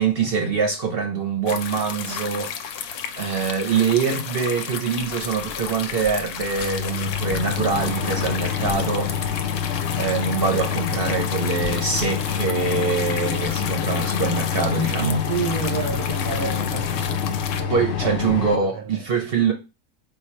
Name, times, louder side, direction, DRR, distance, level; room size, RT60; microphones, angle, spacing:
voice 1, 0.0-2.5 3.2-9.1 10.0-15.3 17.7-19.5, right 5 dB, 50° right, 0.7 m, -24 dB
sound 1, 1.5-17.6, left 7 dB, 90° left, 1.1 m, -33 dB
sound 2, 5.4-5.5 6.1-6.2 6.4-18.6, left 8 dB, 65° left, 0.7 m, -27 dB
voice 2, 15.3-17.8 18.0-19.0, right 5 dB, 85° right, 1.3 m, -31 dB
4.3 x 2.3 x 4.2 m
omnidirectional pair, 1.6 m